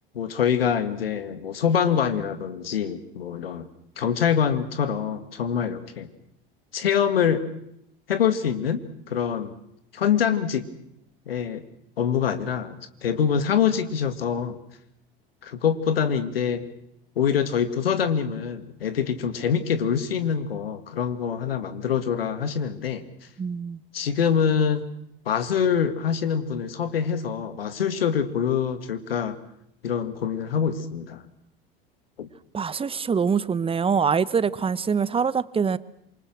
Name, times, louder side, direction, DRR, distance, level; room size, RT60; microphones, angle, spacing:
voice 1, 0.1-3.7 4.0-6.1 6.7-7.5 8.1-9.5 9.9-10.7 11.3-11.6 12.0-14.6 15.4-16.6 17.2-23.0 23.9-24.9 25.3-29.4 29.8-31.2 32.2-32.3, left 7 dB, 80° left, 12 dB, 2.1 m, -25 dB
voice 2, 23.4-23.8 32.5-35.8, right 6 dB, 20° right, 19 dB, 1.0 m, -24 dB
27.0 x 24.0 x 6.2 m, 0.77 s
figure-of-eight pair, 75°, 29 cm